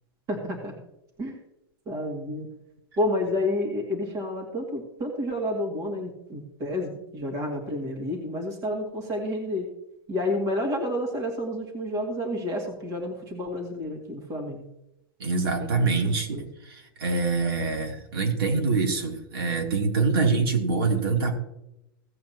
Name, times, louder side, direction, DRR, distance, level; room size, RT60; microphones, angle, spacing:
voice 1, 0.3-0.7 1.2-1.4 1.9-2.5 3.0-9.7 10.1-14.6 15.6-16.5, left 1 dB, 25° right, 1 dB, 2.3 m, -30 dB
voice 2, 15.2-21.4, right 4 dB, 85° right, 2 dB, 3.0 m, -25 dB
16.5 x 8.5 x 2.9 m, 0.85 s
supercardioid pair, 160°, 12 cm